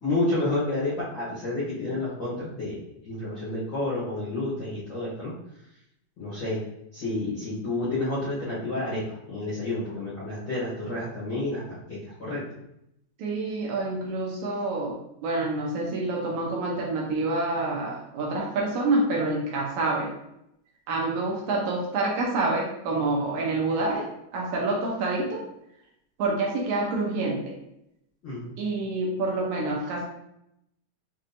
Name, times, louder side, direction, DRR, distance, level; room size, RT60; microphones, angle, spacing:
voice 1, 0.0-2.8 3.0-5.3 6.2-6.6 6.9-9.0 9.3-12.4 28.2-28.5, left 2 dB, 65° left, -9 dB, 1.2 m, -30 dB
voice 2, 13.2-14.9 15.2-20.1 20.9-24.1 24.3-25.4 26.2-27.5 28.6-30.0, right 2 dB, 75° right, -2 dB, 2.0 m, -27 dB
6.3 x 2.9 x 2.6 m, 0.80 s
omnidirectional pair, 3.8 m